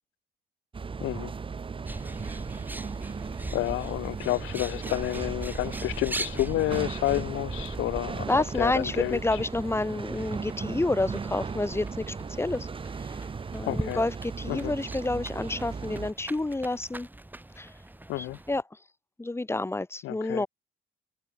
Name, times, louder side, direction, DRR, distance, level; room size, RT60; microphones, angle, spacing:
sound 1, 0.7-16.1, right 5 dB, 25° right, 0.8 m, -37 dB
voice 1, 1.0-1.3 3.5-9.4 13.6-14.0 14.5-14.7 18.1-18.4 20.0-20.5, left 18 dB, 85° left, 0.5 m, -30 dB
Bird, 1.9-18.6, right 1 dB, 10° right, 1.4 m, -41 dB
voice 2, 8.3-12.7 13.0-13.2 13.5-17.1 17.6-17.7 18.2-18.6 19.2-20.5, left 2 dB, 10° left, 1.5 m, -29 dB
cardioid pair, 90°, 20 cm